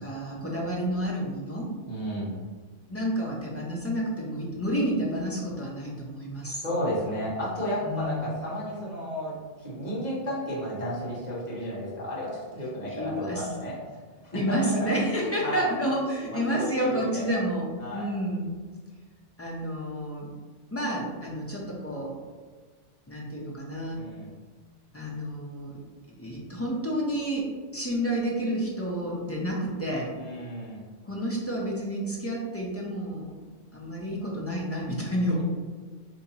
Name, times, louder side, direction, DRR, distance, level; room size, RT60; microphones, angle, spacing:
voice 1, 0.0-1.7 2.9-6.6 7.8-8.2 12.8-13.5 14.3-18.5 19.4-20.3 20.7-22.2 23.1-24.0 24.9-25.8 26.1-30.1 31.0-33.4 33.7-35.4, equal, 20° left, -4 dB, 0.3 m, -30 dB
voice 2, 1.9-2.3 6.6-13.8 14.2-15.7 16.2-17.4 17.8-18.1 23.9-24.3 30.2-30.8, equal, 40° left, -6 dB, 1.1 m, -33 dB
2.8 x 2.8 x 4.0 m, 1.5 s
omnidirectional pair, 1.2 m